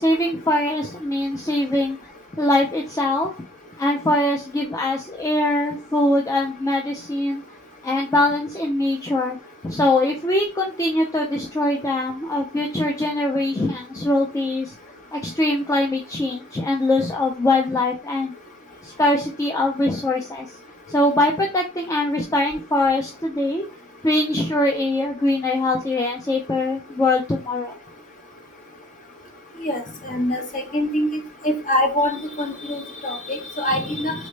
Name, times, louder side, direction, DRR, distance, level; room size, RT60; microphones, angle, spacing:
voice 1, 0.0-2.0 2.3-3.3 3.8-7.4 7.8-9.4 9.6-14.7 15.1-18.3 18.8-20.6 20.9-23.7 24.0-27.8 33.7-33.9, left 1 dB, 15° left, 0 dB, 0.3 m, -22 dB
voice 2, 29.6-31.1 31.4-34.1, left 1 dB, 35° left, 2 dB, 0.9 m, -24 dB
3.9 x 2.1 x 3.2 m, 0.31 s
head